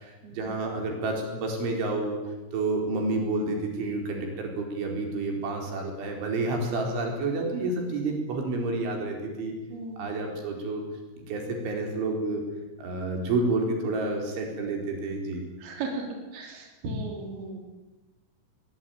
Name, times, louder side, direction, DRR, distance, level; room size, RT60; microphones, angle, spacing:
voice 1, 0.0-2.2 2.5-9.5 10.0-10.8 11.3-12.4 12.8-15.4, right 2 dB, 80° right, 2 dB, 6.8 m, -29 dB
voice 2, 9.7-10.1 15.6-16.0 16.3-17.6, right 2 dB, 60° right, 1 dB, 5.5 m, -36 dB
22.0 x 21.0 x 9.3 m, 1.1 s
omnidirectional pair, 5.4 m